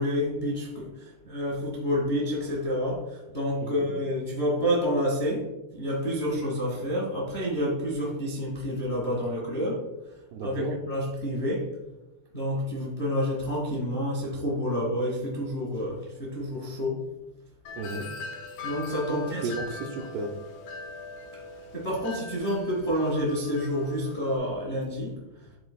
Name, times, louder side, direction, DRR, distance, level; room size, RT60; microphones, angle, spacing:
voice 1, 0.0-9.9 10.4-11.7 12.3-17.0 18.6-19.5 21.7-25.1, equal, 45° left, -5 dB, 0.7 m, -29 dB
voice 2, 10.3-10.7 17.8-18.1 19.1-20.3, right 3 dB, 80° right, 2 dB, 2.4 m, -33 dB
Wind chime, 17.6-24.4, left 3 dB, 80° left, 1.9 m, -41 dB
12.5 x 4.3 x 2.3 m, 1.0 s
omnidirectional pair, 5.0 m